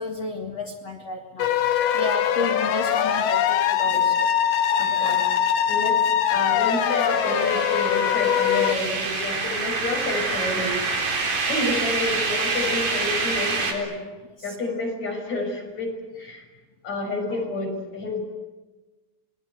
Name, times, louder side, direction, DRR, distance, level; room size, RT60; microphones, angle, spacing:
voice 1, 0.0-1.5 1.9-4.3 5.0-5.2 11.2-11.4 14.4-14.5, left 3 dB, 55° left, 2 dB, 1.7 m, -32 dB
sound 1, 1.4-8.8, left 9 dB, 70° left, 2.1 m, -22 dB
voice 2, 4.8-5.2 5.7-6.0 6.3-10.8 11.4-14.1 14.4-16.4 16.8-18.2, left 2 dB, 35° left, 1 dB, 7.2 m, -29 dB
sound 2, 6.6-13.7, right 4 dB, 45° right, 5.2 m, -27 dB
29.5 x 22.0 x 8.1 m, 1.2 s
omnidirectional pair, 5.9 m